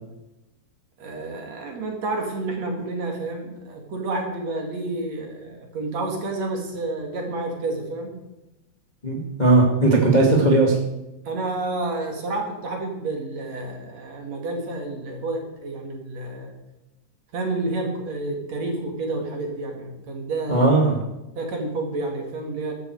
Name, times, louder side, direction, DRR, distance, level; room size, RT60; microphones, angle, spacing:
voice 1, 1.0-8.2 11.2-16.5 17.3-20.7 21.4-22.7, right 2 dB, 45° right, 1 dB, 3.1 m, -30 dB
voice 2, 9.0-10.7 20.5-21.0, right 2 dB, 25° left, -1 dB, 1.0 m, -17 dB
14.5 x 12.5 x 4.7 m, 0.96 s
omnidirectional pair, 4.6 m